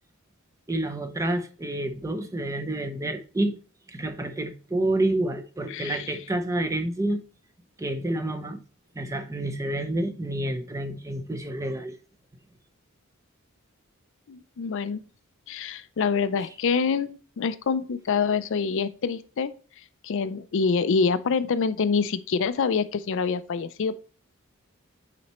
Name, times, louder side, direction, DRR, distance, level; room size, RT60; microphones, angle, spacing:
voice 1, 0.7-3.5 3.9-7.2 7.8-8.6 8.9-12.0, right 1 dB, 15° right, 0.6 m, -28 dB
voice 2, 5.7-6.2 14.3-15.0 15.5-23.9, left 5 dB, 60° left, 0.4 m, -26 dB
8.6 x 4.2 x 3.0 m
head